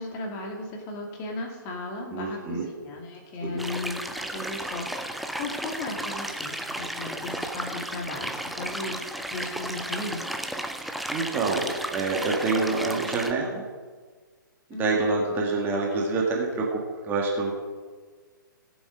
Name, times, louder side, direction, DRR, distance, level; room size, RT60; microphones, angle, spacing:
voice 1, 0.0-10.2 14.7-15.0, left 2 dB, 25° left, 1 dB, 2.2 m, -36 dB
voice 2, 2.1-2.7 3.4-3.6 10.8-13.6 14.7-17.5, right 3 dB, 15° right, -2 dB, 1.8 m, -27 dB
sound 1, 3.6-13.3, right 1 dB, ahead, 0.4 m, -33 dB
18.0 x 7.2 x 5.0 m, 1.5 s
figure-of-eight pair, 125°, 11 cm